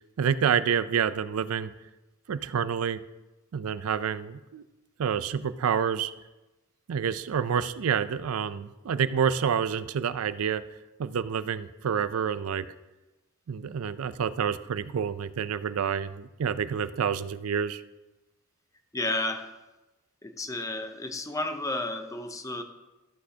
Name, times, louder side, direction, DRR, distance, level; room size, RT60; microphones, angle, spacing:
voice 1, 0.2-1.7 2.3-3.0 3.5-4.6 5.0-6.1 6.9-10.6 11.0-12.7 13.5-17.8, right 7 dB, 75° right, 14 dB, 0.4 m, -28 dB
voice 2, 18.9-19.5 20.2-22.6, left 2 dB, 15° left, 7 dB, 0.6 m, -32 dB
14.0 x 6.3 x 2.8 m, 1.1 s
head